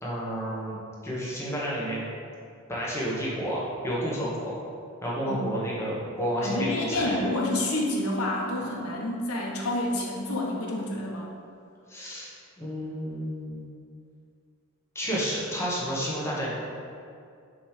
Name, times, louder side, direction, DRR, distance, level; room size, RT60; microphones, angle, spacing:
voice 1, 0.0-2.0 2.7-4.6 5.0-7.2 11.9-12.3 12.6-13.6 14.9-16.6, equal, 10° left, -7 dB, 1.2 m, -31 dB
voice 2, 6.4-11.3, left 1 dB, 80° left, -2 dB, 1.0 m, -29 dB
6.1 x 3.2 x 4.9 m, 2.4 s
head